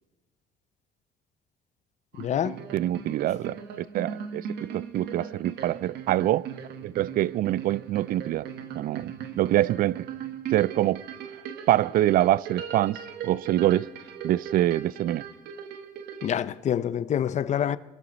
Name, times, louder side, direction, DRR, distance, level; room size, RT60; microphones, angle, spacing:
sound 1, 2.1-16.3, right 7 dB, 75° right, 1.4 m, -39 dB
voice 1, 2.2-2.6 16.2-17.8, left 9 dB, 45° left, 0.6 m, -26 dB
voice 2, 2.7-6.5 6.8-8.5 8.8-10.1 10.5-11.0 11.7-13.9 14.2-15.2, right 14 dB, 60° right, 0.4 m, -25 dB
21.0 x 12.5 x 4.0 m
cardioid pair, 110°, 17 cm